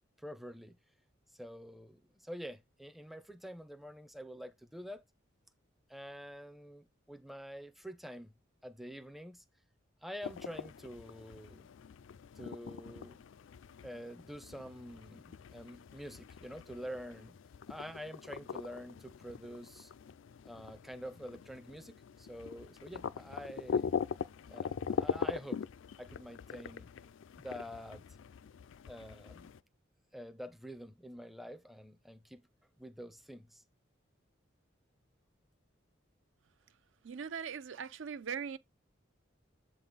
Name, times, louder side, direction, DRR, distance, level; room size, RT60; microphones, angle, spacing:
voice 1, 0.2-0.8 1.3-5.0 5.9-8.3 8.6-9.4 10.0-11.7 12.3-13.2 13.8-17.4 17.7-19.9 20.4-23.9 24.5-25.6 26.0-26.9 27.4-28.0 28.9-29.5 30.1-32.4 32.8-33.6, equal, ahead, 0.5 m, -47 dB
sound 1, 10.2-29.6, left 6 dB, 75° left, 0.4 m, -42 dB
voice 2, 37.0-38.6, right 7 dB, 75° right, 0.5 m, -40 dB
7.6 x 3.8 x 3.9 m
head